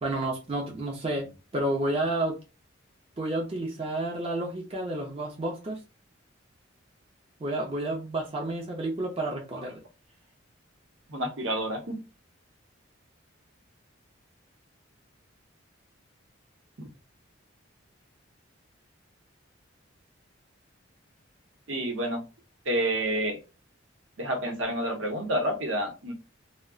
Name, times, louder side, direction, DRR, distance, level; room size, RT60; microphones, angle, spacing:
voice 1, 0.0-2.4 3.2-5.8 7.4-9.8, right 1 dB, 30° right, 0.5 m, -30 dB
voice 2, 11.1-12.0 21.7-22.2 22.7-23.4 24.2-26.1, right 1 dB, 70° right, 0.8 m, -29 dB
2.3 x 2.1 x 3.6 m
head